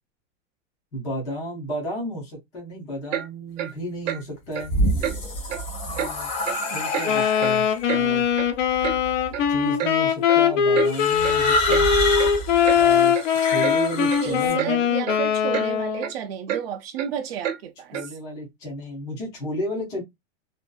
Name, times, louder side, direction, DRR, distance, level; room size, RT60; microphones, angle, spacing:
voice 1, 0.9-4.8 5.8-6.3 6.7-8.2 9.5-11.9 12.7-13.1 13.4-14.8 17.9-20.0, equal, 10° left, 0.4 m, -32 dB
Clock, 3.1-3.3 3.6-3.7 4.0-4.2 4.5-4.7 5.0-5.2 5.5-5.6 6.0-6.1 6.4-6.6 6.9-7.1 7.4-8.0 8.4-8.5 8.8-9.0 9.3-9.5 9.8-9.9 10.3-10.4 10.7-10.9 11.2-11.4 11.7-11.9 12.2-12.3 12.6-12.8 13.1-13.2 13.6-13.8 14.1-14.3 14.6-14.7 15.1-15.2 15.5-15.7 16.0-16.1 16.5-16.6 17.0-17.1 17.4-17.6 17.9-18.1, right 10 dB, 85° right, 0.8 m, -29 dB
sound 1, 4.5-7.9 8.8-9.3 10.8-14.5, left 1 dB, 35° left, 0.9 m, -27 dB
Wind instrument woodwind instrument, 7.0-16.1, left 8 dB, 75° left, 0.7 m, -21 dB
voice 2, 14.2-18.1, right 9 dB, 55° right, 0.5 m, -32 dB
2.6 x 2.3 x 2.2 m
supercardioid pair, 175°, 37 cm